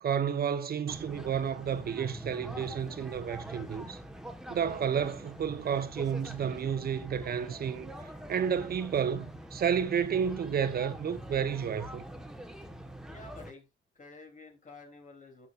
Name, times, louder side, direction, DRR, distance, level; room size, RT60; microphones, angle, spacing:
voice 1, 0.0-4.0 4.5-12.0, right 7 dB, 50° right, 1.0 m, -31 dB
sound 1, 0.9-13.5, right 1 dB, 5° right, 1.4 m, -45 dB
voice 2, 13.1-13.7 13.9-15.5, left 2 dB, 40° left, 3.3 m, -50 dB
12.0 x 6.5 x 2.6 m
cardioid pair, 90°, 20 cm